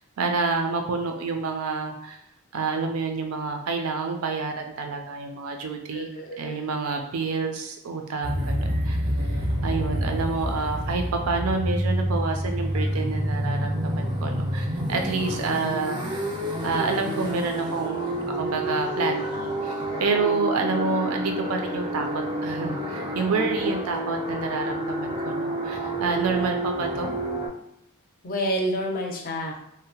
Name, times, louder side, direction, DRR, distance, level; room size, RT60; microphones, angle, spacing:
voice 1, 0.2-2.2 2.5-6.1 6.4-9.3 9.6-16.2 16.6-22.1 22.4-27.1, right 4 dB, 85° right, 4 dB, 0.4 m, -28 dB
voice 2, 5.9-6.7 20.7-20.9 23.3-23.7 28.2-29.6, equal, 45° left, 1 dB, 0.5 m, -29 dB
sound 1, 8.2-27.5, equal, 20° right, 0.4 m, -28 dB
2.7 x 2.0 x 2.7 m, 0.77 s
head